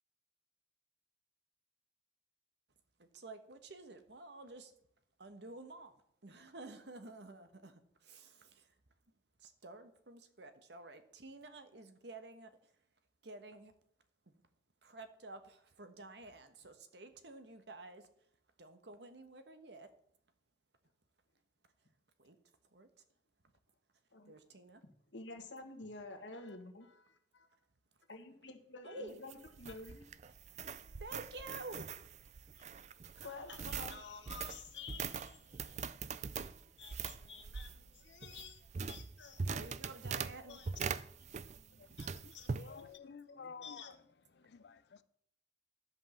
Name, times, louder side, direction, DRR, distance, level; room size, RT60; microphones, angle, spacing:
voice 1, 3.0-4.7 5.2-5.9 6.2-7.8 8.1-8.3 9.4-12.5 13.2-13.7 14.3-14.4 14.8-18.1 18.6-19.9 22.2-22.4 22.7-22.9 24.2-24.8 28.8-29.2 31.0-31.9 39.5-40.6 41.7-42.1, right 2 dB, 70° right, 1.2 m, -51 dB
voice 2, 24.8-27.5 28.1-30.1 32.6-32.7 33.1-35.9 36.3-39.4 40.4-44.0 44.3-44.8, left 4 dB, 85° left, 1.6 m, -51 dB
sound 1, 29.1-41.7 42.0-42.7, right 5 dB, 40° right, 0.4 m, -42 dB
voice 3, 42.2-44.0 44.4-45.0, left 5 dB, 65° left, 0.5 m, -52 dB
11.0 x 5.4 x 7.3 m
head